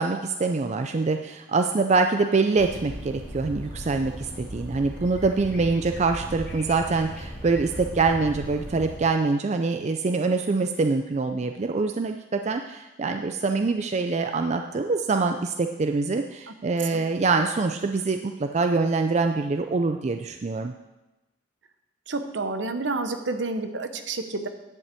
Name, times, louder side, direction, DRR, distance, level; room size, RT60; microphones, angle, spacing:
voice 1, 0.0-20.7, right 3 dB, 35° right, 6 dB, 0.4 m, -25 dB
sound 1, 2.6-9.0, equal, 5° left, 2.4 m, -38 dB
voice 2, 22.1-24.5, right 3 dB, 65° right, 8 dB, 0.9 m, -29 dB
10.5 x 5.5 x 8.2 m, 1.1 s
head